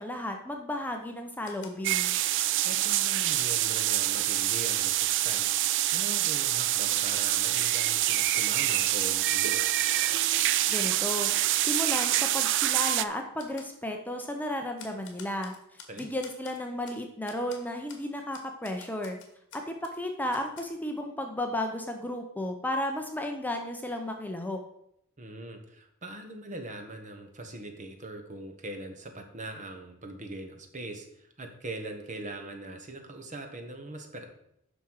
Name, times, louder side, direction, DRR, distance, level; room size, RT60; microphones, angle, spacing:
voice 1, 0.0-2.1 10.7-11.3 11.6-19.2 19.5-24.6, left 1 dB, 10° left, 3 dB, 0.7 m, -34 dB
Typewriter, 1.4-3.9 4.3-4.4 4.8-5.6 6.1-7.4 7.7-9.2 9.7-10.0 10.4-10.9 11.1-11.6 12.0-12.2 12.5-12.6 13.0-13.1 13.4-13.7 14.2-14.3 14.8-17.0 17.3-17.6 17.9-18.0 18.3-20.0 20.3-20.6, left 6 dB, 60° left, 1.7 m, -50 dB
sound 1, 1.8-13.0, right 14 dB, 60° right, 0.4 m, -26 dB
voice 2, 2.6-9.6 15.9-16.1 25.2-34.3, right 1 dB, 35° right, 5 dB, 1.3 m, -41 dB
9.5 x 6.1 x 4.8 m, 0.75 s
head